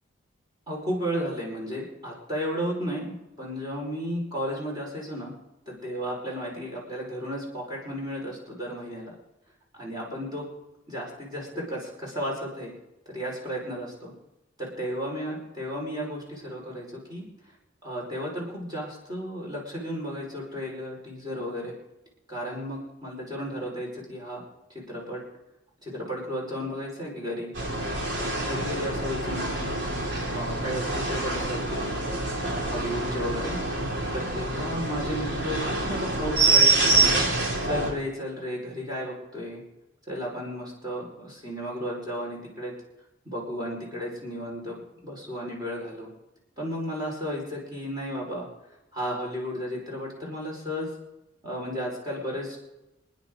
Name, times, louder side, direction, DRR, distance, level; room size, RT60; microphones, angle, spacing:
voice 1, 0.7-5.3 5.7-9.1 9.7-10.4 10.9-12.8 13.1-14.1 14.6-17.2 17.8-21.8 22.3-24.4 24.9-25.2 25.8-27.5 28.1-29.8 30.3-31.9 32.3-33.6 34.1-37.2 37.6-39.6 40.1-42.7 43.3-46.1 46.6-48.5 48.9-50.9 51.4-52.6, equal, 20° right, -3 dB, 5.3 m, -33 dB
sound 1, 27.5-37.9, right 3 dB, 60° right, 3.7 m, -26 dB
27.5 x 10.5 x 4.0 m, 0.96 s
head